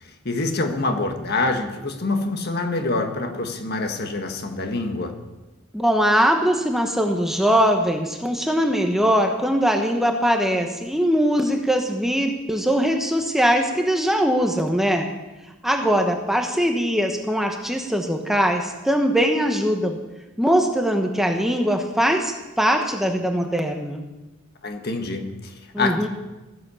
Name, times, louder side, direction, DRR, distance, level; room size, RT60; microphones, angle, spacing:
voice 1, 0.2-5.1 24.6-26.1, left 2 dB, 50° left, 5 dB, 1.6 m, -26 dB
voice 2, 5.7-15.1 15.6-20.0 20.4-24.0 25.7-26.1, equal, ahead, 3 dB, 1.0 m, -21 dB
15.0 x 10.5 x 7.0 m, 1.1 s
head